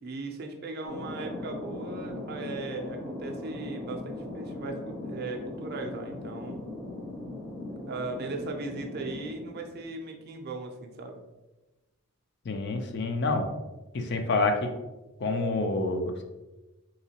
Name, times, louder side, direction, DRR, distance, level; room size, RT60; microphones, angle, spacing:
voice 1, 0.0-6.6 7.9-11.2, right 3 dB, 45° right, 3 dB, 0.4 m, -38 dB
Thunder, 0.8-10.2, left 2 dB, ahead, 0.5 m, -39 dB
voice 2, 12.5-13.6 13.9-14.7 15.2-16.2, left 3 dB, 50° left, 5 dB, 0.4 m, -27 dB
3.5 x 2.9 x 2.8 m, 1.1 s
head